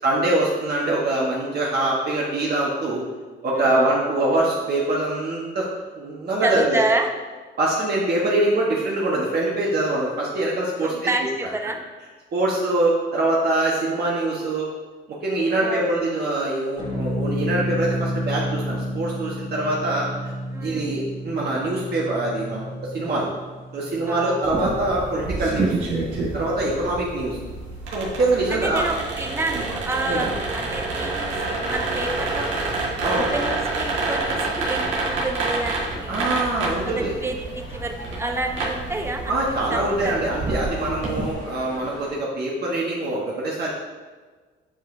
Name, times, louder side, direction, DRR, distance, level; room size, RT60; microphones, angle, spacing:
voice 1, 0.0-3.0 3.4-5.7 5.9-6.8 7.6-10.9 12.3-14.7 15.2-20.3 20.6-23.3 23.7-25.8 26.3-27.4 27.9-28.8 29.5-29.6 30.0-30.3 33.0-33.3 36.1-37.1 39.3-43.7, right 2 dB, 55° right, -5 dB, 1.2 m, -24 dB
voice 2, 3.5-3.9 6.4-7.1 10.8-11.8 15.5-15.9 20.5-20.9 24.1-24.4 26.7-26.9 28.5-32.7 33.1-36.2 37.2-37.3 37.7-39.4 39.7-40.6, right 2 dB, 10° right, 4 dB, 0.7 m, -29 dB
sound 1, 16.8-27.3, left 1 dB, 30° left, 1.7 m, -32 dB
sound 2, 24.4-41.3, right 3 dB, 85° right, 1.7 m, -28 dB
sound 3, 31.9-42.2, left 2 dB, 65° left, 1.8 m, -42 dB
8.7 x 4.9 x 2.6 m, 1.4 s
cardioid pair, 90°, 20 cm